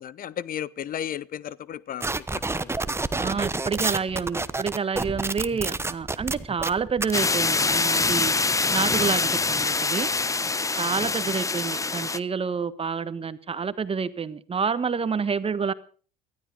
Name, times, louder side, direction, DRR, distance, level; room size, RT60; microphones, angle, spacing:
voice 1, 0.0-3.0 10.7-11.0, left 10 dB, 50° left, 0.7 m, -35 dB
sound 1, 2.0-7.3, right 3 dB, 15° right, 1.0 m, -29 dB
voice 2, 3.2-8.3 8.7-10.1 10.8-15.7, right 6 dB, 30° right, 1.3 m, -28 dB
sound 2, 7.1-12.2, left 3 dB, 15° left, 0.8 m, -24 dB
18.5 x 13.0 x 5.4 m
supercardioid pair, 85°, 19 cm